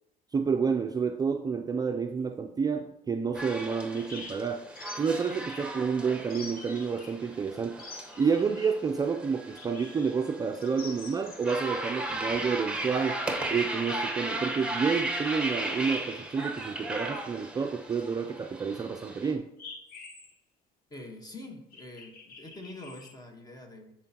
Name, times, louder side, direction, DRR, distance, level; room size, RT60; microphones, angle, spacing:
voice 1, 0.3-4.7 5.0-7.8 8.2-13.2 13.5-19.5, right 5 dB, 20° right, 5 dB, 0.4 m, -29 dB
sound 1, 3.3-19.3, right 1 dB, 5° right, 1.1 m, -36 dB
sound 2, 3.9-5.7 6.3-7.2 7.8-8.9 9.5-10.1 10.6-11.6 16.4-16.5 19.6-20.4 21.7-23.2, left 3 dB, 60° left, 1.3 m, -46 dB
voice 2, 20.9-23.9, left 1 dB, 25° left, 4 dB, 1.2 m, -45 dB
9.9 x 4.5 x 2.9 m, 0.83 s
cardioid pair, 110°, 17 cm